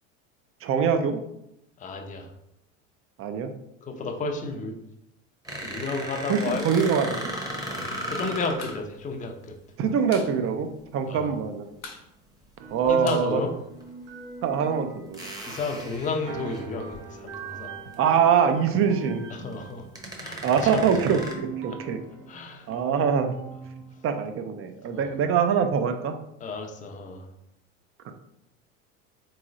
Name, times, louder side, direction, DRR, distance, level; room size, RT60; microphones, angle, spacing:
voice 1, 0.6-1.2 3.2-3.5 6.3-7.2 9.8-10.7 10.9-11.6 12.7-13.4 14.4-15.2 18.0-19.3 20.4-22.0 22.7-23.3 24.0-26.2, right 7 dB, 35° right, 7 dB, 0.5 m, -23 dB
voice 2, 1.8-2.3 3.8-4.8 5.5-6.9 7.6-9.5 11.1-11.3 12.9-13.5 15.5-17.8 19.3-19.9 20.2-20.9 21.7-21.8 22.3-22.7 24.9-25.1 26.4-27.3, left 3 dB, 20° left, 4 dB, 0.5 m, -32 dB
sound 1, 5.4-8.8 10.9-11.1 12.8-12.9 13.8-13.9 15.1-17.0 17.5-17.6 17.9-18.0 19.5-19.6 20.0-21.3, right 1 dB, 10° right, 0.8 m, -36 dB
sound 2, 8.6-8.8 9.1-9.2 9.5-10.3 10.7-10.8 11.0-11.4 11.8-14.1, left 4 dB, 75° left, 0.9 m, -44 dB
sound 3, 12.6-24.1, right 5 dB, 65° right, 0.7 m, -42 dB
3.7 x 3.1 x 2.5 m, 0.80 s
hypercardioid pair, 75°, 40 cm